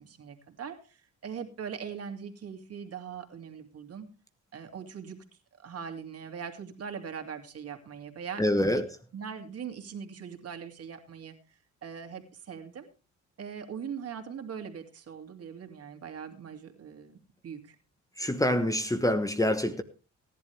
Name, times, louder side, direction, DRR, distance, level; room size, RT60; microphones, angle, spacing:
voice 1, 0.0-4.1 4.5-5.2 5.6-8.8 9.1-11.4 11.8-12.9 13.4-17.8, right 7 dB, 50° right, 2.6 m, -41 dB
voice 2, 8.4-8.9 18.2-19.8, left 1 dB, 10° left, 1.1 m, -26 dB
17.5 x 11.0 x 3.4 m
cardioid pair, 90°, 30 cm